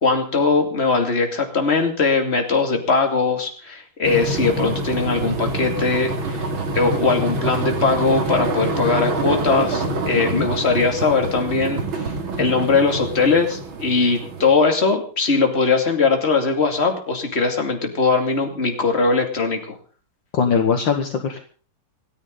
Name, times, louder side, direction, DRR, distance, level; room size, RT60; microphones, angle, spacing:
voice 1, 0.0-6.4 6.7-12.1 12.4-19.8, left 4 dB, 30° left, 4 dB, 2.8 m, -20 dB
sound 1, 4.0-14.5, right 2 dB, 65° right, 3.1 m, -26 dB
voice 2, 20.3-21.4, left 6 dB, 60° left, 5 dB, 2.1 m, -20 dB
27.5 x 10.5 x 4.0 m, 0.42 s
omnidirectional pair, 2.4 m